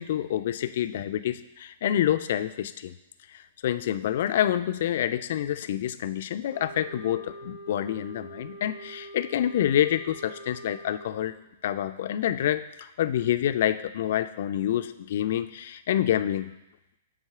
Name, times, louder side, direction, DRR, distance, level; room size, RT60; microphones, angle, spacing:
voice 1, 0.0-2.9 3.3-11.4 11.6-16.5, left 11 dB, 55° left, 12 dB, 0.3 m, -27 dB
sound 1, 6.5-11.4, right 2 dB, 50° right, 0.8 m, -44 dB
7.4 x 3.0 x 5.6 m, 0.92 s
figure-of-eight pair, 110°, 0 cm